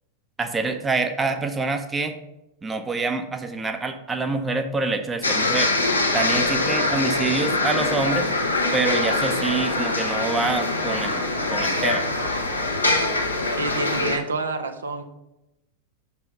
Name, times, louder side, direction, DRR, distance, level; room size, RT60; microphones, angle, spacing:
voice 1, 0.4-2.2 2.6-5.8 6.1-8.3 8.7-11.2 11.5-12.1, right 3 dB, 15° right, 6 dB, 0.7 m, -26 dB
sound 1, 5.2-14.2, left 2 dB, 80° left, 0.9 m, -23 dB
voice 2, 13.6-15.0, right 3 dB, 70° right, 6 dB, 0.6 m, -28 dB
6.3 x 4.1 x 5.5 m, 0.92 s
figure-of-eight pair, 90°, 0 cm